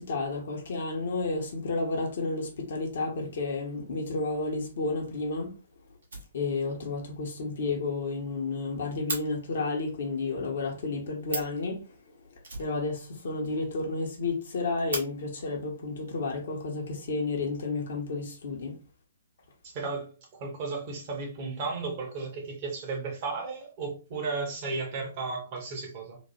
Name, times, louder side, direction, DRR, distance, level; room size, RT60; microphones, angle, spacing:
voice 1, 0.0-5.5 6.3-11.8 12.6-18.7, left 3 dB, 60° left, 0.7 m, -31 dB
Fire, 6.0-6.8 7.1-7.2 7.6-7.7 7.9-8.0 8.3-9.2 11.0-11.1 11.2-11.6 12.4-13.3 13.6-13.7 14.0-14.1 14.5-15.0 16.1-16.2 16.8-17.4, right 2 dB, 70° right, 1.0 m, -38 dB
voice 2, 19.6-26.2, right 4 dB, 40° right, 0.9 m, -34 dB
2.9 x 2.1 x 3.0 m
figure-of-eight pair, 125°, 0 cm